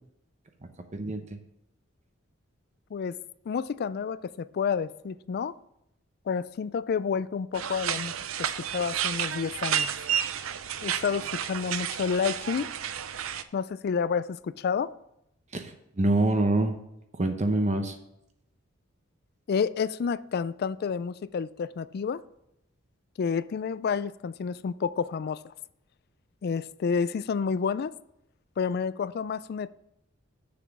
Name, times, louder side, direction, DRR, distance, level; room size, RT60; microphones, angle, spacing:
voice 1, 0.9-1.2 15.5-16.7 17.2-18.0, right 2 dB, 35° right, 0.9 m, -25 dB
voice 2, 3.5-5.6 6.3-9.9 10.8-12.7 13.5-14.9 19.5-22.2 23.2-25.5 26.4-28.0 28.6-29.7, left 6 dB, 50° left, 0.3 m, -30 dB
sound 1, 7.5-13.4, right 9 dB, 85° right, 0.6 m, -31 dB
7.3 x 6.9 x 6.0 m
head